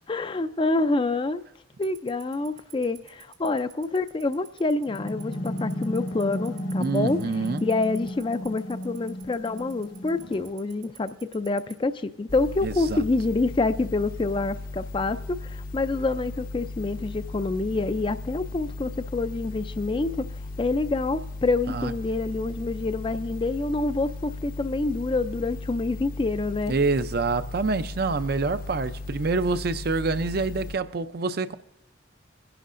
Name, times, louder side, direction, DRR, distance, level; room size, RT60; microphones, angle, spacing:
voice 1, 0.1-1.4 1.8-7.2 7.6-20.3 20.6-26.7, left 3 dB, 25° left, 0.4 m, -27 dB
Tick-tock, 1.8-11.7, right 15 dB, 85° right, 2.3 m, -46 dB
sound 1, 4.9-10.5, equal, 70° left, 1.1 m, -34 dB
voice 2, 6.8-7.6 12.6-13.0 21.7-21.9 26.7-31.5, right 3 dB, 50° right, 0.5 m, -26 dB
sound 2, 12.3-30.8, left 2 dB, 45° left, 0.7 m, -37 dB
22.0 x 11.0 x 2.5 m
head